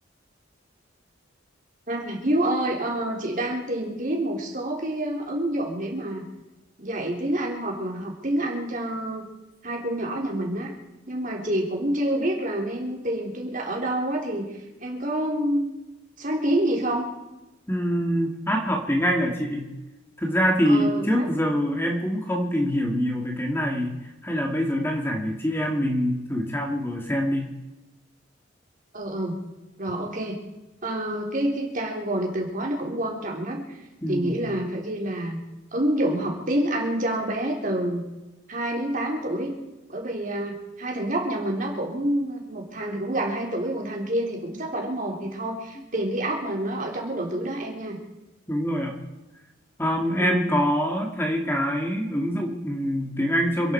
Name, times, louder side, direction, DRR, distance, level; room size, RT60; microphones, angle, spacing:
voice 1, 1.9-6.2 6.8-9.3 9.6-10.7 11.1-14.5 14.8-15.7 16.2-17.1 20.7-21.3 28.9-29.4 29.8-30.4 30.8-33.8 34.1-35.4 35.7-38.0 38.5-39.5 39.9-48.0 50.2-50.6, right 1 dB, 45° right, 0 dB, 3.7 m, -27 dB
voice 2, 17.7-19.7 20.2-27.5 34.0-34.4 48.5-49.0 49.8-53.7, equal, 10° left, 1 dB, 2.2 m, -25 dB
28.0 x 11.0 x 4.6 m, 1.0 s
head